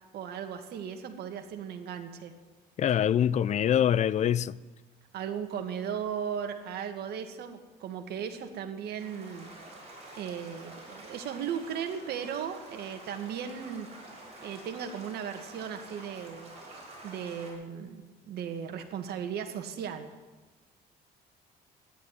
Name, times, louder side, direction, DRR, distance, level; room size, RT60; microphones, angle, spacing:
voice 1, 0.1-2.3 5.1-9.5 10.1-13.9 14.4-16.5 17.0-20.1, right 8 dB, 70° right, 1.9 m, -36 dB
voice 2, 2.8-4.6, left 10 dB, 45° left, 0.5 m, -24 dB
sound 1, 9.0-17.5, right 2 dB, 40° right, 7.0 m, -48 dB
13.0 x 11.0 x 9.8 m
cardioid pair, 110°, 17 cm